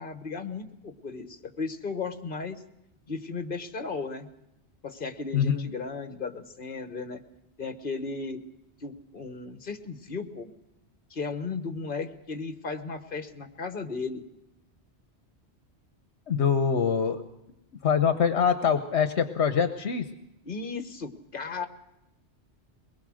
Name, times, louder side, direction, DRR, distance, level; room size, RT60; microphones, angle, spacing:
voice 1, 0.0-2.6 3.1-4.3 4.8-7.2 7.6-8.4 8.8-10.5 11.1-14.2 20.4-21.7, left 4 dB, 50° left, 9 dB, 1.6 m, -35 dB
voice 2, 5.3-5.7 16.3-17.2 17.8-20.1, left 7 dB, 75° left, 9 dB, 1.3 m, -24 dB
22.5 x 20.5 x 6.4 m, 0.90 s
omnidirectional pair, 1.2 m